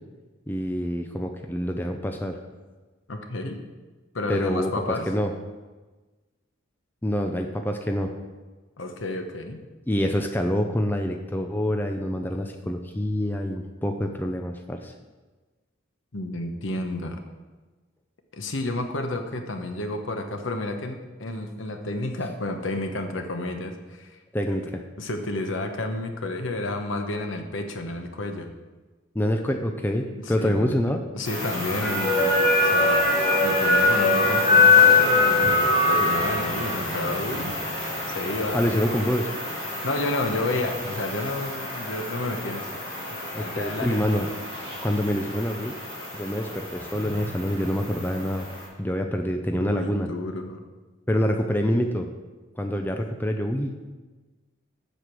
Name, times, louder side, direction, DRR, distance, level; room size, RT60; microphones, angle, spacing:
voice 1, 0.5-2.4 4.3-5.3 7.0-8.1 9.9-14.9 24.3-24.8 29.1-31.0 38.5-39.3 43.3-44.3 44.8-45.7 46.1-48.5 48.8-50.1 51.1-52.1 52.6-53.9, equal, 10° left, 4 dB, 0.5 m, -26 dB
voice 2, 3.1-3.6 4.1-5.1 8.8-9.6 16.1-17.2 18.3-24.2 24.5-24.6 25.0-28.5 30.2-30.7 31.1-33.1 33.4-37.9 38.1-38.9 39.8-42.7 43.4-44.1 49.6-50.6, left 2 dB, 70° left, 5 dB, 1.0 m, -31 dB
sound 1, 31.3-48.6, left 3 dB, 25° left, 3.3 m, -24 dB
7.9 x 6.6 x 6.1 m, 1.3 s
head